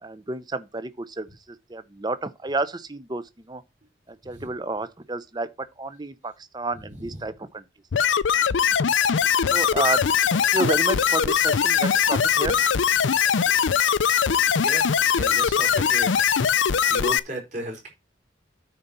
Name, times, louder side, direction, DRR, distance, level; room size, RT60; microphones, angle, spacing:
voice 1, 0.0-3.6 4.1-5.5 5.8-7.6 9.5-10.0 10.3-12.6, right 2 dB, 20° right, 0.7 m, -30 dB
sound 1, 7.9-17.2, left 7 dB, 80° left, 0.5 m, -21 dB
voice 2, 15.1-16.1 16.9-17.9, right 2 dB, 40° right, 4.2 m, -34 dB
9.3 x 4.3 x 6.6 m
head